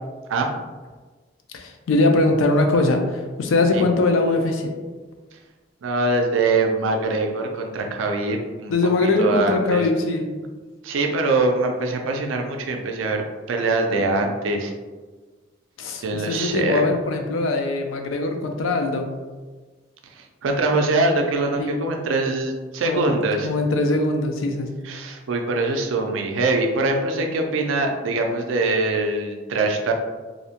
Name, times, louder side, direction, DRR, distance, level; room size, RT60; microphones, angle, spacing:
voice 1, 1.5-4.7 8.7-10.3 15.8-19.1 21.6-21.8 22.8-23.1 23.4-24.7, left 2 dB, 90° left, 4 dB, 0.4 m, -21 dB
voice 2, 5.8-8.7 9.0-9.8 10.8-14.7 16.0-16.9 20.2-23.5 24.8-29.9, right 2 dB, 85° right, 3 dB, 0.4 m, -23 dB
2.6 x 2.1 x 2.8 m, 1.3 s
head